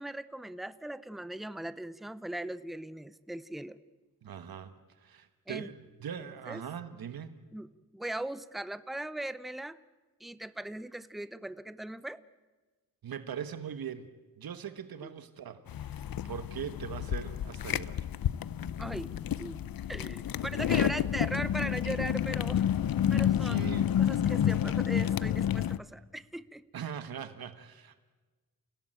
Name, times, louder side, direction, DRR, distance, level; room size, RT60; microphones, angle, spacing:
voice 1, 0.0-3.8 5.5-5.7 6.5-6.6 7.5-9.8 10.2-12.2 18.8-19.6 19.9-22.7 23.1-23.7 24.0-26.6, right 1 dB, ahead, 15 dB, 0.7 m, -39 dB
voice 2, 4.2-7.3 13.0-14.1 14.4-18.0 23.4-24.0 26.7-28.0, right 8 dB, 90° right, 10 dB, 1.3 m, -41 dB
sound 1, 15.7-25.8, left 10 dB, 75° left, 0.7 m, -30 dB
28.5 x 17.0 x 9.0 m, 1.3 s
wide cardioid pair, 115°, 35 cm